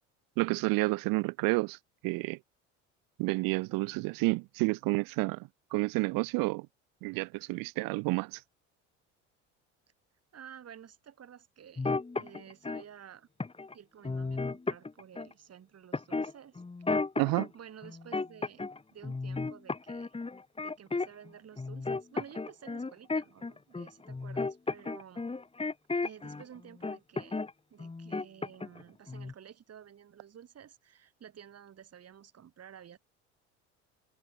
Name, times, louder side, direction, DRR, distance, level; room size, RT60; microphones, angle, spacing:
voice 1, 0.4-1.8 2.0-2.4 3.2-6.7 7.0-8.4 17.2-17.5, right 25 dB, 65° right, 1.4 m, -30 dB
voice 2, 10.3-13.3 13.7-16.6 17.5-18.6 18.9-20.2 20.6-25.3 26.0-27.4 27.7-33.0, right 9 dB, 40° right, 5.4 m, -52 dB
sound 1, 11.8-12.8 13.4-13.7 14.0-15.3 15.9-17.5 17.8-18.8 19.0-21.3 21.6-26.4 26.8-27.5 27.8-28.8 29.1-29.3, left 3 dB, 15° left, 2.0 m, -34 dB
hypercardioid pair, 70°, 36 cm